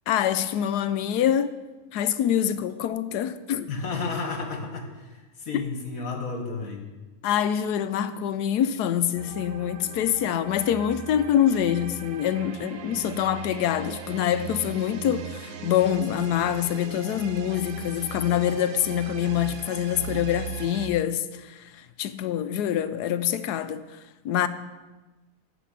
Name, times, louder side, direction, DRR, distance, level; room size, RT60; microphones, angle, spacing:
voice 1, 0.1-1.5 1.9-3.7 5.5-5.6 7.2-23.8 24.2-24.5, left 10 dB, 80° left, 1.2 m, -25 dB
voice 2, 3.7-6.9, left 4 dB, 60° left, 2.0 m, -32 dB
sound 1, 9.1-20.9, right 6 dB, 65° right, 1.2 m, -39 dB
12.0 x 5.1 x 8.3 m
omnidirectional pair, 1.7 m